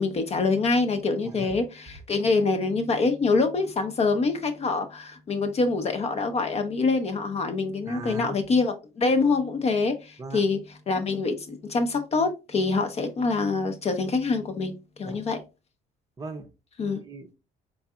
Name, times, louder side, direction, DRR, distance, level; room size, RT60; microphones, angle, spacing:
voice 1, 0.0-10.6 10.9-14.7 15.0-15.4 16.8-17.0, left 3 dB, 40° left, 0.6 m, -25 dB
voice 2, 7.9-8.4 10.2-10.4 15.1-15.2 16.2-16.5 16.9-17.4, right 3 dB, 20° right, 0.6 m, -38 dB
3.9 x 3.6 x 2.3 m
cardioid pair, 110°, 17 cm